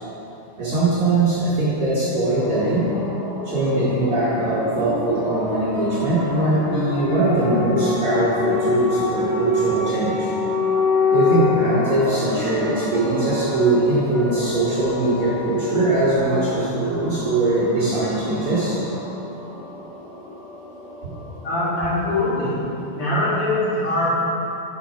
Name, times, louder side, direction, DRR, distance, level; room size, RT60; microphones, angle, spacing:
voice 1, 0.6-2.9 3.4-10.3 11.1-18.8, right 2 dB, 50° right, -11 dB, 2.0 m, -21 dB
sound 1, 2.3-21.8, left 3 dB, 65° left, 1.8 m, -27 dB
voice 2, 21.4-22.5 22.9-24.1, left 2 dB, 45° left, -12 dB, 2.6 m, -22 dB
6.2 x 5.9 x 5.0 m, 3.0 s
omnidirectional pair, 3.6 m